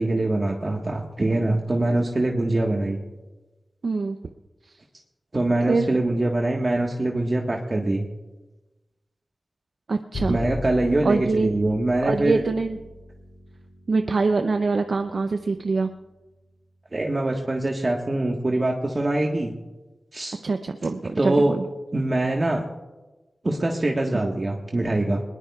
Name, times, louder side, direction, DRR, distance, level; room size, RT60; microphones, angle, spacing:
voice 1, 0.0-3.0 5.3-8.1 10.3-12.4 16.9-19.5 20.1-20.4 21.2-21.5 21.9-22.6 23.4-25.2, right 2 dB, 40° right, 0 dB, 1.4 m, -23 dB
voice 2, 3.8-4.2 5.7-5.9 9.9-10.4 11.0-11.5 12.0-12.8 13.9-15.9 20.4-21.6, right 4 dB, 65° right, 6 dB, 0.6 m, -24 dB
Bowed string instrument, 10.1-16.6, left 1 dB, 85° left, 3.5 m, -39 dB
21.0 x 20.0 x 2.4 m, 1.1 s
cardioid pair, 60°, 0 cm